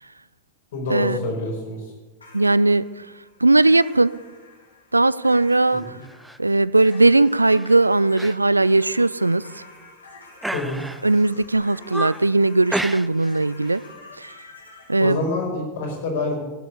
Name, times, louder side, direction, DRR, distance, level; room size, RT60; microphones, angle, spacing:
voice 1, 0.7-1.8 5.9-6.0 10.5-10.8 15.0-16.4, left 2 dB, 60° left, 0 dB, 4.8 m, -26 dB
sound 1, 2.2-15.0, left 3 dB, 75° left, 2.8 m, -47 dB
voice 2, 2.3-2.9 3.4-4.1 4.9-5.8 6.4-9.4 11.0-13.8 14.2-14.3 14.9-15.2, right 2 dB, 85° right, 19 dB, 0.4 m, -18 dB
sound 2, 6.0-6.4 6.8-7.1 7.5-7.8 8.2-8.4 8.7-8.8 9.4-9.9 10.4-11.2 11.6-12.3 12.7-13.4 13.6-13.9, right 1 dB, 5° right, 0.5 m, -32 dB
16.0 x 7.9 x 8.2 m, 1.2 s
figure-of-eight pair, 90°, 0 cm